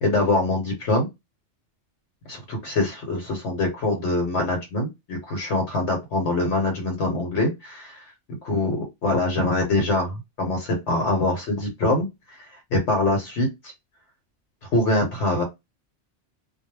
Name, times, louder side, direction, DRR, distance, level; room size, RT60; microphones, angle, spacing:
voice 1, 0.0-1.1 2.3-8.0 8.4-12.5 12.7-13.7 14.7-15.4, left 2 dB, 70° left, 3 dB, 1.0 m, -24 dB
2.1 x 2.1 x 3.1 m, 0.21 s
omnidirectional pair, 1.2 m